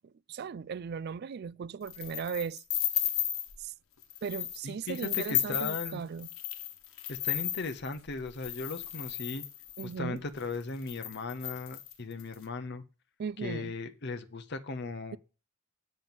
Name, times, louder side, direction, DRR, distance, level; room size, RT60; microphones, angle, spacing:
voice 1, 0.3-2.6 3.6-3.7 4.2-6.3 9.8-10.2 13.2-13.8, right 6 dB, 50° right, 0.3 m, -37 dB
sound 1, 1.9-3.6 4.0-4.6 4.9-9.9 10.5-10.6 10.8-12.3, left 12 dB, 85° left, 1.2 m, -34 dB
voice 2, 4.6-6.0 7.1-9.4 9.8-12.8 13.4-15.2, left 3 dB, 55° left, 0.8 m, -37 dB
7.7 x 5.4 x 7.3 m
head